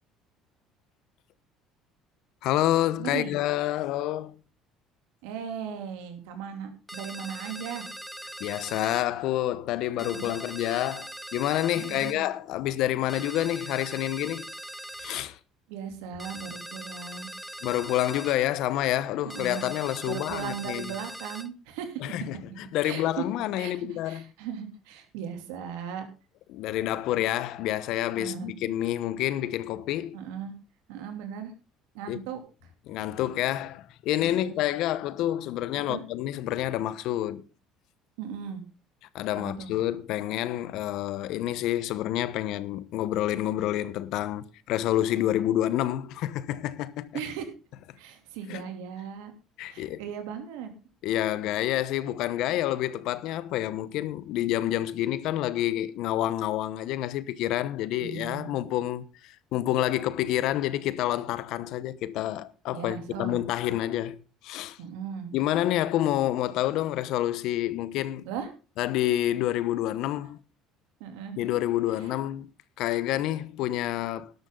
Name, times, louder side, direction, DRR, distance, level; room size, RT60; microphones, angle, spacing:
voice 1, 2.4-4.4 8.4-14.5 15.0-15.4 17.6-20.9 22.0-24.2 26.5-30.2 32.1-32.2 32.9-37.4 39.1-47.1 48.5-48.6 49.6-50.0 51.0-64.8 65.3-68.3 68.8-70.4 71.4-72.5 72.8-74.3, left 13 dB, 70° left, 1.0 m, -28 dB
voice 2, 3.0-3.3 5.2-7.9 10.0-10.4 11.7-12.2 15.7-17.3 19.2-19.6 20.1-22.1 22.8-23.2 23.6-26.1 28.2-28.6 30.1-30.5 30.9-31.5 31.9-32.4 34.2-34.5 35.9-36.0 38.2-38.6 39.4-39.7 47.1-47.5 48.0-49.3 49.7-50.7 58.0-58.5 62.7-63.4 64.8-65.3 68.2-68.5 71.0-71.4 71.9-72.1, right 8 dB, 85° right, 3.0 m, -37 dB
sound 1, 6.9-9.1 10.0-12.2 13.1-15.3 16.2-18.4 19.3-21.5, right 1 dB, 5° right, 0.7 m, -41 dB
12.0 x 12.0 x 3.8 m
supercardioid pair, 100°, 0 cm